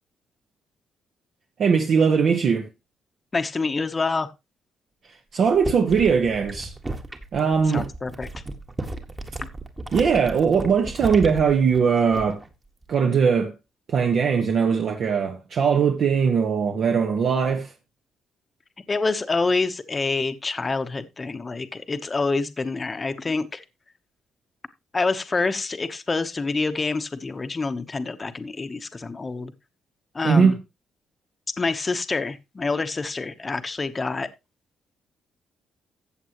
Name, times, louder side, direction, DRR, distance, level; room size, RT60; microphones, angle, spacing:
voice 1, 1.6-2.7 5.0-6.7 7.3-7.9 9.9-12.4 12.9-13.5 13.9-17.7 30.2-30.6, right 6 dB, 55° right, 1.4 m, -20 dB
voice 2, 3.3-4.3 7.7-8.3 9.4-9.5 18.9-23.6 24.9-29.5 30.1-30.5 31.6-34.3, left 3 dB, 25° left, 1.0 m, -27 dB
sound 1, 5.4-12.5 12.8-13.2, right 2 dB, 20° right, 1.6 m, -35 dB
14.0 x 8.0 x 3.0 m
cardioid pair, 115°, 0 cm